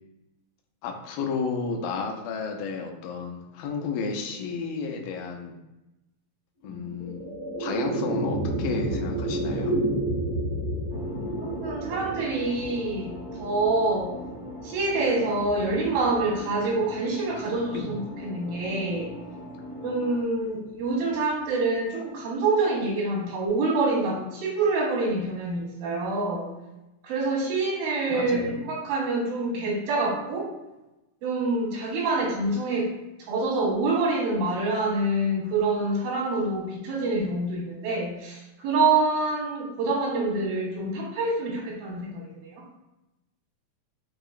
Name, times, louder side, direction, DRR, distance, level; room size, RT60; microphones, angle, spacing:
voice 1, 0.8-5.6 6.6-7.3 7.6-9.8 17.7-17.9 28.1-28.6, left 5 dB, 85° left, 3 dB, 2.3 m, -32 dB
sound 1, 6.6-17.1, right 1 dB, 70° left, 1.5 m, -31 dB
sound 2, 10.9-20.2, right 1 dB, 65° right, 0.8 m, -41 dB
voice 2, 11.4-14.1 14.6-19.1 19.8-26.5 27.0-30.5 31.2-32.9 33.2-42.6, right 3 dB, 90° right, -4 dB, 2.9 m, -26 dB
6.7 x 2.8 x 2.4 m, 0.98 s
omnidirectional pair, 4.0 m